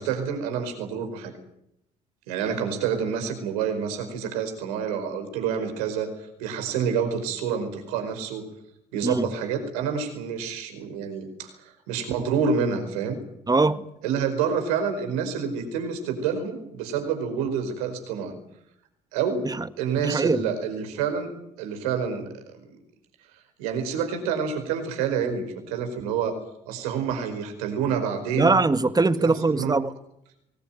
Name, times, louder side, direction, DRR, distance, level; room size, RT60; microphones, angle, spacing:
voice 1, 0.0-1.3 2.3-6.1 6.4-8.4 8.9-13.2 14.0-18.4 19.1-19.5 19.8-21.3 21.6-22.3 22.6-22.7 23.6-26.4 26.7-28.6 29.2-29.8, right 6 dB, 85° right, 4.9 m, -28 dB
voice 2, 13.5-13.9 19.4-19.7 20.0-20.4 28.3-29.9, right 3 dB, 20° right, 1.7 m, -22 dB
23.5 x 19.5 x 9.2 m
hypercardioid pair, 60°, 18 cm